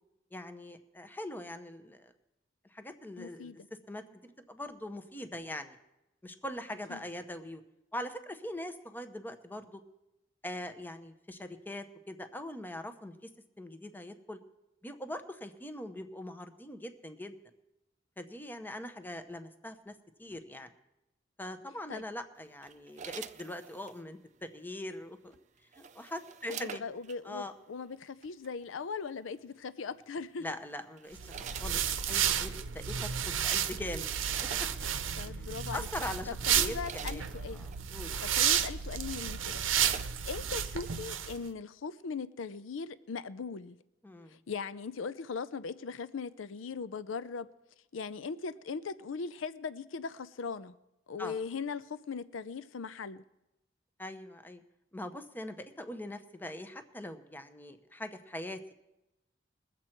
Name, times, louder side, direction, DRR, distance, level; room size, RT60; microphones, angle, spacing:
voice 1, 0.3-2.1 2.7-3.5 3.9-5.8 6.2-7.6 7.9-9.8 10.4-13.3 13.6-14.4 14.8-17.4 18.2-19.9 20.2-20.7 21.4-25.4 25.7-26.8 27.2-27.5 30.4-31.8 32.1-34.1 34.6-34.7 35.7-37.3 37.5-38.1 39.2-39.3 44.0-44.4 51.2-51.4 54.0-54.6 54.9-58.7, left 1 dB, 10° left, 9 dB, 0.8 m, -42 dB
voice 2, 3.2-3.6 6.9-7.0 21.9-22.0 26.5-30.4 35.2-35.9 36.3-37.7 38.2-39.6 40.2-43.8 44.3-47.5 47.9-50.7 51.1-53.2, left 5 dB, 75° left, 15 dB, 0.5 m, -39 dB
sound 1, 22.6-24.0 25.3-27.2 28.2-28.5 30.1-30.4 31.0-32.3 33.1-33.2 33.5-35.0 35.8-35.9 36.4-37.9 38.5-38.6 38.9-40.5 40.9-41.0, right 7 dB, 40° right, 0.5 m, -46 dB
sound 2, 31.2-41.4, right 9 dB, 75° right, 0.8 m, -32 dB
22.0 x 7.6 x 4.5 m, 0.94 s
head